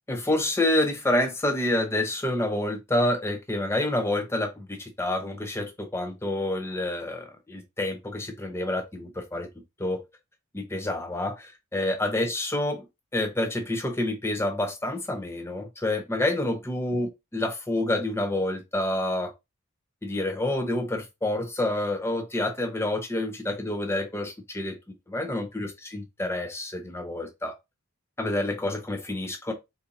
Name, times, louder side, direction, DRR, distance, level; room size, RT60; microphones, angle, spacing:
voice 1, 0.1-9.5 9.8-10.0 10.5-12.9 13.1-19.3 20.0-24.8 25.1-27.5 28.2-29.5, left 1 dB, 10° left, 0.5 m, -28 dB
4.1 x 2.6 x 2.8 m
head